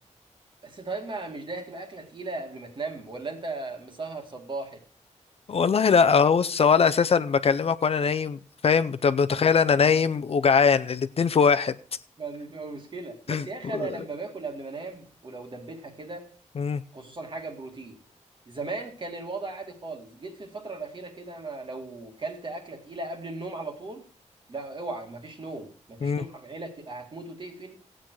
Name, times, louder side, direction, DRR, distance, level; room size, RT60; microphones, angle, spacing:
voice 1, 0.6-4.8 9.3-9.6 12.2-16.3 16.9-18.0 18.5-24.0 24.5-27.8, right 3 dB, 40° right, 2.0 m, -37 dB
voice 2, 5.5-11.8 13.3-13.4 13.7-13.9 16.6-16.8 26.0-26.2, left 6 dB, 50° left, 0.5 m, -21 dB
15.0 x 8.9 x 4.6 m
wide cardioid pair, 155°, 13 cm